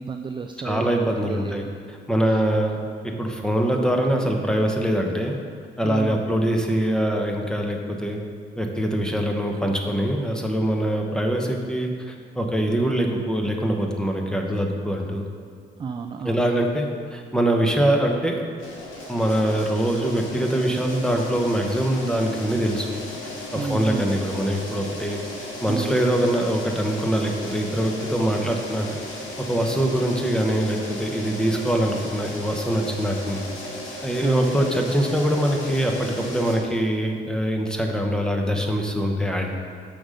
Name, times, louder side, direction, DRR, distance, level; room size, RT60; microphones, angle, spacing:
voice 1, 0.0-1.7 2.3-2.4 5.8-6.2 15.8-16.4 23.6-24.2 25.7-26.0 34.2-34.6, right 5 dB, 25° right, 5 dB, 0.3 m, -31 dB
voice 2, 0.6-5.4 5.8-8.2 8.6-15.2 16.2-18.4 19.1-23.0 23.5-25.2 25.6-28.9 29.4-33.4 34.0-39.5, right 1 dB, 5° left, 2 dB, 1.0 m, -23 dB
sound 1, 18.6-36.5, left 1 dB, 85° left, 1.8 m, -35 dB
6.1 x 5.1 x 6.4 m, 2.2 s
cardioid pair, 90°, 20 cm